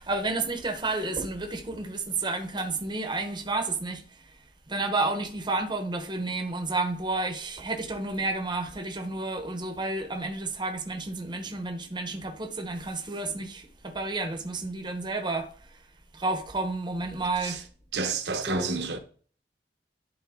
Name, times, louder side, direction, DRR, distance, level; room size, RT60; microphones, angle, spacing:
voice 1, 0.0-4.0 4.7-15.5 16.1-17.6 18.5-18.7, right 2 dB, 25° right, 0.9 m, -31 dB
voice 2, 17.9-19.0, right 4 dB, 75° right, 1.0 m, -30 dB
10.5 x 4.1 x 3.6 m
head